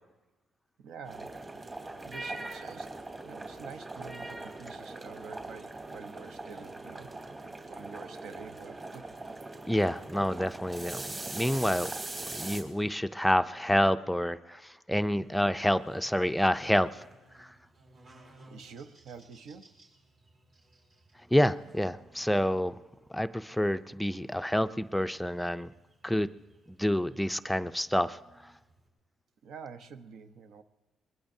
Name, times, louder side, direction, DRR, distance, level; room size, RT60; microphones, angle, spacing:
voice 1, 0.8-1.4 2.0-7.1 7.4-9.0 18.5-19.8 29.4-30.6, right 6 dB, 75° right, 9 dB, 0.8 m, -47 dB
sound 1, 1.0-12.6, right 2 dB, 35° right, 3.3 m, -41 dB
voice 2, 9.6-11.9 12.3-17.1 17.4-17.5 21.3-22.7 23.1-25.7 26.0-26.3 26.7-28.5, equal, 5° left, 11 dB, 0.4 m, -28 dB
Buzz, 14.9-28.9, right 1 dB, 55° right, 4.5 m, -61 dB
22.5 x 20.5 x 2.7 m, 1.2 s
cardioid pair, 90°, 0 cm